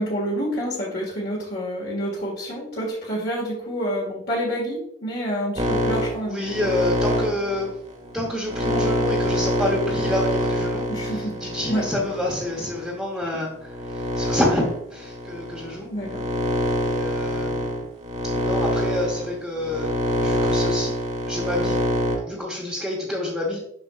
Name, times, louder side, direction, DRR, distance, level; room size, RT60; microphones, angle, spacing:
voice 1, 0.0-6.4 10.9-11.4 11.7-11.9 15.9-16.2, equal, 60° left, -5 dB, 1.7 m, -28 dB
sound 1, 5.6-12.9 13.5-22.2, equal, 35° right, 1.1 m, -25 dB
voice 2, 6.2-7.7 8.1-14.6 14.9-15.9 16.8-17.9 18.4-19.9 20.2-20.9 21.3-21.8 22.3-23.6, left 1 dB, ahead, -5 dB, 0.9 m, -28 dB
7.4 x 6.0 x 2.4 m, 0.77 s
head